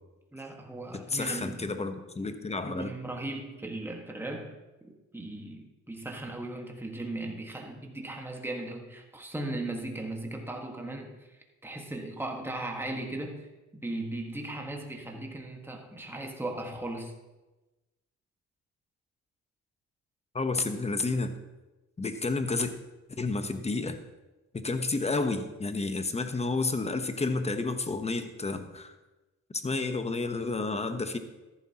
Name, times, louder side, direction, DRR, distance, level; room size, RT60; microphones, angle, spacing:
voice 1, 0.3-1.7 2.6-4.6 4.8-17.1, right 2 dB, 5° right, 1 dB, 1.6 m, -37 dB
voice 2, 0.9-2.9 20.3-21.3 22.0-22.7 23.1-24.0 24.5-28.9 29.5-31.2, left 3 dB, 20° left, 9 dB, 0.9 m, -30 dB
13.5 x 11.5 x 2.9 m, 1.1 s
cardioid pair, 90°, 30 cm